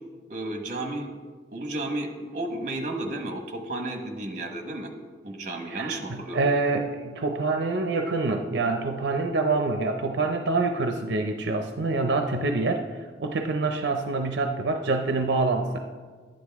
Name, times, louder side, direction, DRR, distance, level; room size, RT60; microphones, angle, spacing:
voice 1, 0.3-1.1 1.5-4.9 5.2-6.4, right 2 dB, 45° right, 4 dB, 1.3 m, -32 dB
voice 2, 5.7-15.8, right 3 dB, 80° right, 5 dB, 0.5 m, -26 dB
11.5 x 9.4 x 3.5 m, 1.5 s
head